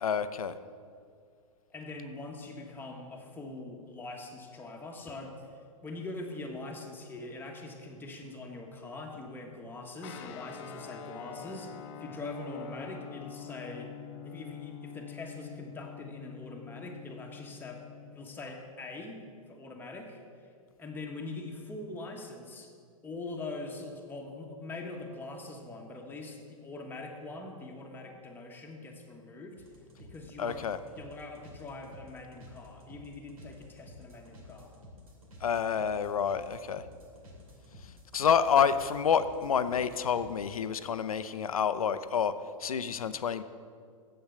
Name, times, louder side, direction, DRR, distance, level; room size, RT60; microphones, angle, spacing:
voice 1, 0.0-0.5 30.4-30.8 35.4-36.8 38.1-42.3 42.6-43.4, left 7 dB, 90° left, 13 dB, 0.5 m, -28 dB
voice 2, 1.7-5.4 5.8-13.9 14.2-17.8 18.1-20.2 20.8-22.7 23.0-29.6 30.0-34.7, left 2 dB, 10° left, 1 dB, 1.3 m, -43 dB
Guitar, 10.0-18.5, left 8 dB, 50° left, 0.8 m, -46 dB
sound 1, 29.6-40.3, left 1 dB, 80° right, 2.5 m, -52 dB
7.8 x 7.2 x 6.8 m, 2.2 s
hypercardioid pair, 115°, 18 cm